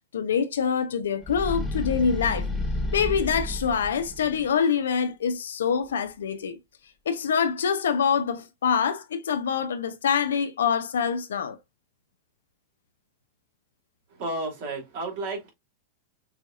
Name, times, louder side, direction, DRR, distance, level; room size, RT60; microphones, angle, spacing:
voice 1, 0.1-2.5 2.9-6.6 7.1-11.6, left 7 dB, 85° left, 0.6 m, -25 dB
sound 1, 1.2-4.5, left 2 dB, 20° left, 1.2 m, -31 dB
voice 2, 14.1-15.5, right 2 dB, 60° right, 2.3 m, -32 dB
6.4 x 2.7 x 2.3 m
hypercardioid pair, 105°, 0 cm